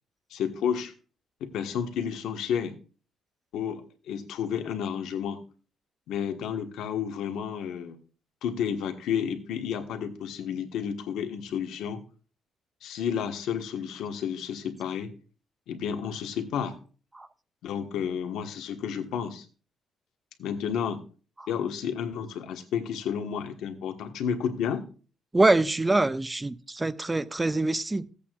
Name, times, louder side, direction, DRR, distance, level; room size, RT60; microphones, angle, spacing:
voice 1, 0.3-0.9 1.4-2.8 3.5-5.4 6.1-8.0 8.4-12.0 12.8-15.1 15.7-16.8 17.6-19.4 20.4-21.0 21.5-24.8, left 8 dB, 80° left, 1.4 m, -31 dB
voice 2, 25.3-28.1, right 2 dB, 10° right, 0.4 m, -24 dB
16.0 x 8.4 x 2.4 m
cardioid pair, 180°, 0 cm